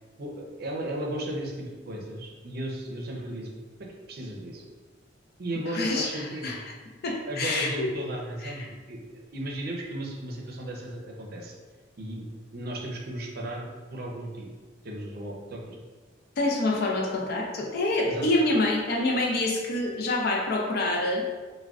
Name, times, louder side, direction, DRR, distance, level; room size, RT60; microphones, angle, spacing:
voice 1, 0.2-3.5 3.8-4.6 5.4-6.5 7.3-9.0 9.3-11.5 12.0-12.2 12.5-14.5 14.8-15.8 18.0-18.3, right 1 dB, 55° right, 0 dB, 0.5 m, -35 dB
voice 2, 5.7-6.6 7.0-7.9 8.4-8.7 16.4-21.3, left 2 dB, 55° left, 0 dB, 0.5 m, -26 dB
3.5 x 2.2 x 2.3 m, 1.4 s
head